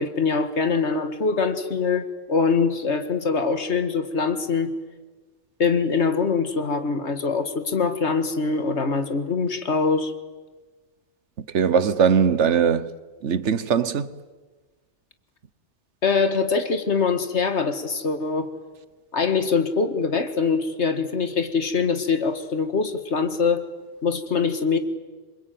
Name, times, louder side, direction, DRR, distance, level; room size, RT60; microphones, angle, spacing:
voice 1, 0.0-4.7 5.6-10.1 16.0-18.5 19.1-23.6 24.0-24.8, left 5 dB, 75° left, 2.1 m, -23 dB
voice 2, 11.5-12.9 13.2-14.1, right 7 dB, 85° right, 1.3 m, -20 dB
26.5 x 23.5 x 9.3 m
omnidirectional pair, 1.2 m